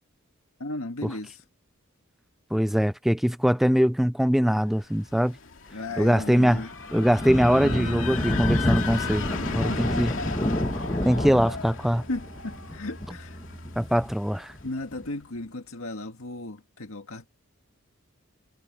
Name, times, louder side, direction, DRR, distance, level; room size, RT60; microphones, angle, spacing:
voice 1, 0.6-1.4 5.7-6.7 9.6-10.1 12.1-13.4 14.6-17.3, left 2 dB, 85° left, 1.8 m, -35 dB
voice 2, 2.5-5.4 6.0-6.6 6.9-9.3 9.5-10.1 11.1-12.0 13.8-14.5, equal, ahead, 0.4 m, -22 dB
sound 1, 4.8-14.6, left 4 dB, 65° left, 2.5 m, -37 dB
Thunder, 5.9-15.0, left 1 dB, 20° left, 1.3 m, -30 dB
Bass guitar, 7.5-13.8, right 1 dB, 40° right, 2.3 m, -38 dB
head